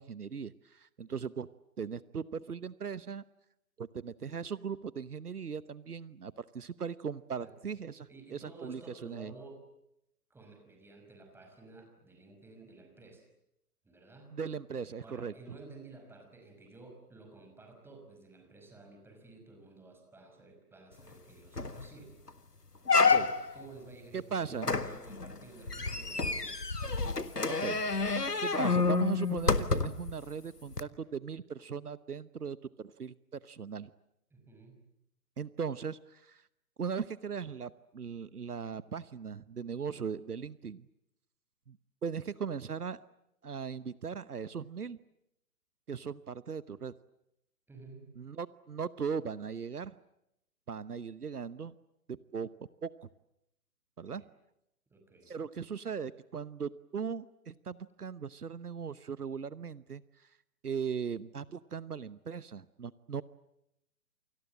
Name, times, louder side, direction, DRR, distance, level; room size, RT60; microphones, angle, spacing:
voice 1, 0.0-1.5 1.8-3.2 3.8-9.3 14.3-15.3 23.1-23.3 24.1-24.7 27.6-27.8 28.4-33.1 33.4-33.9 35.4-36.4 36.8-40.9 41.7-41.8 42.0-43.0 43.4-45.0 45.9-46.9 48.2-49.9 50.7-51.7 52.3-52.5 52.8-53.1 54.0-54.2 55.3-60.3 60.6-63.2, right 6 dB, 75° right, 18 dB, 1.0 m, -38 dB
voice 2, 8.0-9.6 10.3-13.3 13.8-14.3 15.0-22.2 23.2-26.6 34.3-34.8 47.7-48.1 54.1-54.3 54.9-55.3, right 3 dB, 5° right, 3 dB, 5.6 m, -53 dB
sound 1, 21.1-21.2 21.6-21.9 22.3-22.4 22.9-23.6 24.6-30.1 30.7-30.8, left 4 dB, 85° left, 1.8 m, -29 dB
29.0 x 25.5 x 7.6 m, 0.83 s
figure-of-eight pair, 130°, 46 cm